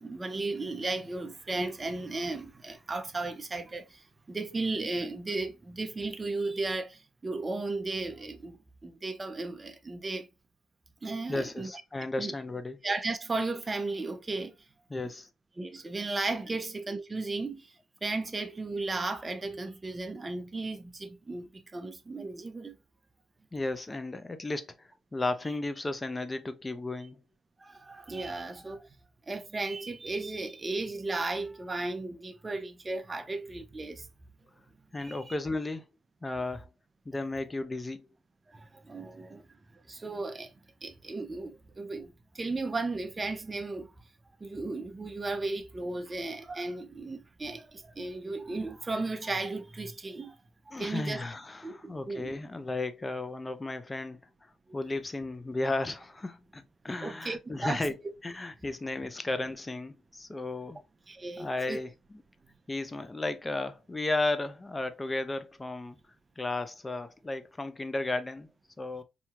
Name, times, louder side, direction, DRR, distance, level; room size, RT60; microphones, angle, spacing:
voice 1, 0.0-10.3 11.0-11.7 12.2-12.3 12.8-14.5 15.6-17.8 18.0-22.8 27.6-28.9 29.2-34.1 34.9-35.4 38.5-39.5 39.7-40.5 40.8-43.9 44.4-50.4 50.7-51.2 51.6-52.4 57.0-57.8 61.1-61.8, right 3 dB, 25° right, 0.6 m, -35 dB
voice 2, 11.3-12.8 14.9-15.3 16.5-16.6 23.5-27.2 34.9-35.9 36.2-36.7 37.1-38.1 50.7-54.2 54.7-60.8 61.4-62.2 62.7-66.0 66.4-68.5 68.8-69.0, left 2 dB, 20° left, 0.6 m, -34 dB
4.3 x 2.8 x 2.3 m
cardioid pair, 90°, 0 cm